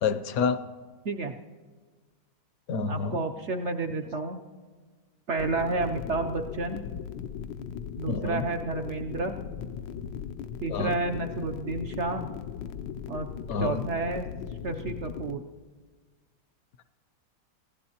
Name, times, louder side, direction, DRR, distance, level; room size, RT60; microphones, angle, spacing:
voice 1, 0.0-0.6 2.7-3.1 8.1-8.4 10.7-11.0 13.5-13.8, left 5 dB, 65° left, 12 dB, 1.0 m, -28 dB
voice 2, 2.9-4.4 5.3-6.8 8.0-9.4 10.6-12.3 13.1-13.3 13.6-14.3 14.6-15.4, right 3 dB, 70° right, 5 dB, 0.6 m, -30 dB
sound 1, 5.4-15.4, left 8 dB, 85° left, 1.3 m, -38 dB
26.5 x 15.0 x 2.8 m, 1.5 s
omnidirectional pair, 1.9 m